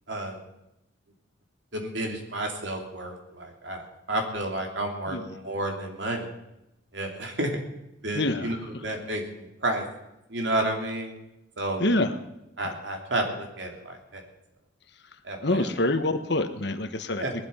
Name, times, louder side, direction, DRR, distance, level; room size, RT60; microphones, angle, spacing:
voice 1, 0.1-0.4 1.7-3.8 4.1-6.3 6.9-7.5 8.0-9.8 10.3-11.1 11.6-11.8 12.6-14.2 15.2-15.7 17.2-17.3, right 1 dB, 70° right, 2 dB, 3.1 m, -31 dB
voice 2, 8.1-8.5 11.8-12.1 12.6-12.7 15.4-17.3, left 2 dB, 60° left, 8 dB, 1.3 m, -26 dB
19.0 x 12.0 x 5.7 m, 0.88 s
head